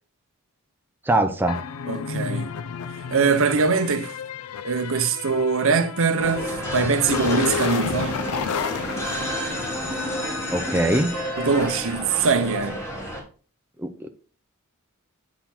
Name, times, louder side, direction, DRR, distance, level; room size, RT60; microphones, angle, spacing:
voice 1, 1.1-1.6 10.5-11.2 13.8-14.1, right 1 dB, 10° right, 0.5 m, -22 dB
sound 1, 1.5-10.2, left 6 dB, 75° left, 0.5 m, -31 dB
voice 2, 1.9-2.5 3.1-4.2 4.6-8.2 11.4-12.8, right 5 dB, 65° right, 0.7 m, -22 dB
sound 2, 6.2-13.2, equal, 10° left, 1.8 m, -30 dB
8.3 x 4.0 x 4.3 m
head